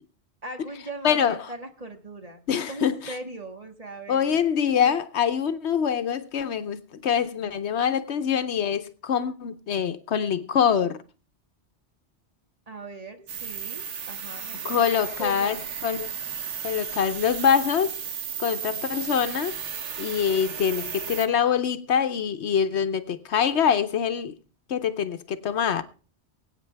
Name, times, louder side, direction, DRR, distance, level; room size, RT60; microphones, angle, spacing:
voice 1, 0.4-4.4 12.7-15.7 18.5-18.9, right 2 dB, 35° right, 1.7 m, -40 dB
voice 2, 1.0-1.4 2.5-3.0 4.1-11.0 14.6-15.6 15.8-16.1 16.6-18.0 18.4-19.5 20.0-24.3 24.7-25.8, left 8 dB, 70° left, 1.0 m, -24 dB
sound 1, 13.3-21.3, right 8 dB, 85° right, 1.3 m, -34 dB
24.0 x 8.5 x 3.3 m
omnidirectional pair, 1.2 m